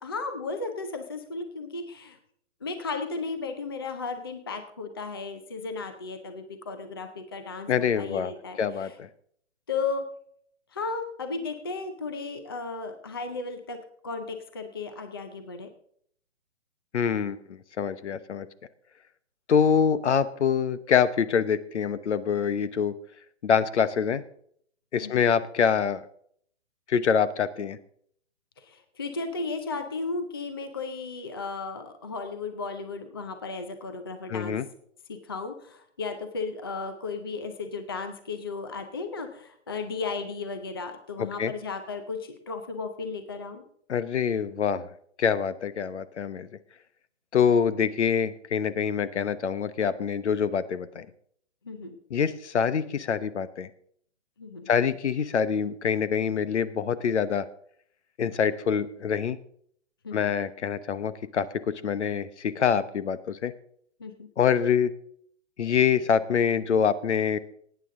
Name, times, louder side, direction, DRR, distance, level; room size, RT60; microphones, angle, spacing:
voice 1, 0.0-2.2 2.6-9.0 9.7-10.0 10.7-13.8 14.0-15.7 25.0-25.3 28.6-34.6 35.1-43.6 51.6-52.0 54.4-54.7 60.0-60.3 64.0-64.3, left 4 dB, 20° left, 7 dB, 0.5 m, -35 dB
voice 2, 7.7-8.3 8.6-9.1 16.9-18.5 19.5-22.9 23.4-24.2 24.9-26.0 26.9-27.8 34.3-34.7 41.2-41.5 43.9-44.9 45.2-46.5 47.3-51.1 52.1-53.7 54.7-57.5 58.2-59.4 60.1-63.5 64.4-64.9 65.6-67.4, left 7 dB, 70° left, 14 dB, 1.0 m, -25 dB
18.5 x 9.3 x 3.7 m, 0.64 s
hypercardioid pair, 175°, 36 cm